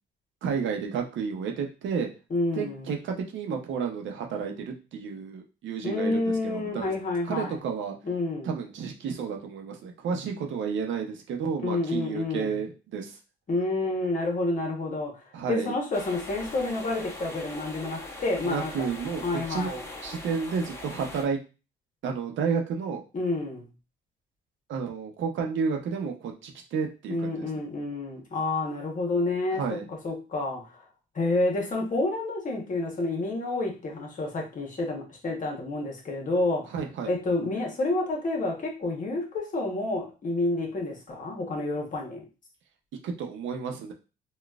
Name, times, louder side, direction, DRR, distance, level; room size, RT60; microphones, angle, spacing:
voice 1, 0.4-2.1 2.6-6.9 7.2-8.0 8.4-13.2 15.3-15.7 18.4-21.4 22.0-23.0 24.7-27.5 29.5-29.9 36.7-37.1 43.0-43.9, right 6 dB, 75° right, 2 dB, 0.7 m, -31 dB
voice 2, 2.3-2.9 5.8-7.6 8.0-8.5 11.6-12.6 13.5-18.9 19.2-19.8 23.1-23.7 27.1-30.8 31.1-36.7 37.1-42.2, left 2 dB, 40° left, 0 dB, 1.1 m, -29 dB
sound 1, 15.9-21.2, left 2 dB, 15° left, 0.9 m, -41 dB
3.9 x 2.3 x 2.3 m, 0.32 s
cardioid pair, 90°, 20 cm